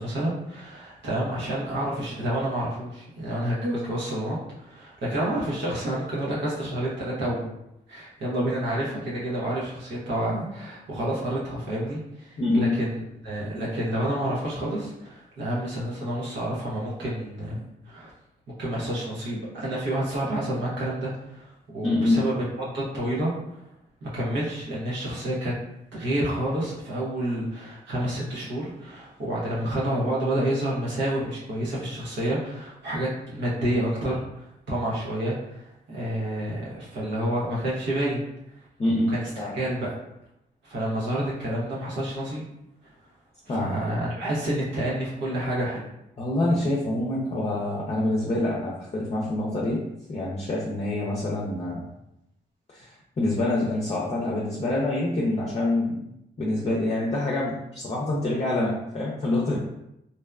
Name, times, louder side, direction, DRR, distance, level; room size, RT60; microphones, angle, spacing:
voice 1, 0.0-7.5 7.9-18.1 18.6-23.3 24.0-25.5 25.9-38.3 39.1-40.0 40.6-42.4 42.8-42.9 43.5-45.9, right 1 dB, 75° right, -7 dB, 0.8 m, -29 dB
voice 2, 12.4-12.8 21.8-22.2 38.8-39.5 43.5-43.7 46.2-49.8 50.1-51.8 52.7-56.1 56.4-59.6, left 2 dB, 35° left, -4 dB, 0.6 m, -26 dB
2.6 x 2.1 x 2.3 m, 0.84 s
supercardioid pair, 50°, 19 cm